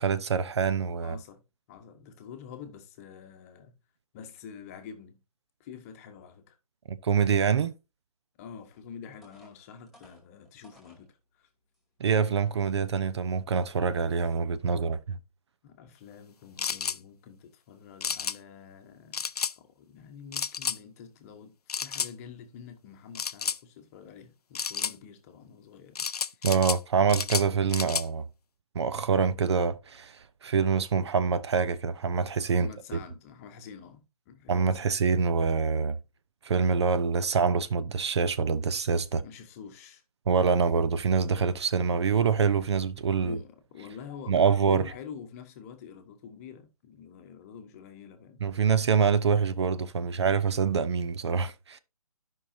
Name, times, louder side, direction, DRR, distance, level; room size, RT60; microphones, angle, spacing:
voice 1, 0.0-1.2 6.9-7.7 12.0-15.2 26.4-28.2 28.7-32.7 34.5-35.9 36.4-39.2 40.3-43.4 44.3-44.8 48.4-51.8, right 6 dB, 45° right, 0.6 m, -25 dB
voice 2, 1.0-1.4 1.7-3.8 4.1-5.2 5.6-6.6 8.4-11.5 15.6-19.2 19.6-26.1 26.3-26.5 32.6-34.8 39.2-40.0 43.2-48.4, left 7 dB, 25° left, 1.1 m, -47 dB
sound 1, 8.7-8.8 9.2-11.1 11.7-11.8 12.3-12.6, left 1 dB, ahead, 2.2 m, -58 dB
sound 2, 16.6-17.0 18.0-18.4 19.1-19.5 20.3-20.8 21.7-22.1 23.1-23.6 24.5-24.9 26.0-26.8 27.1-28.1, left 6 dB, 75° left, 0.4 m, -31 dB
12.5 x 5.6 x 2.7 m
figure-of-eight pair, 140°, 20 cm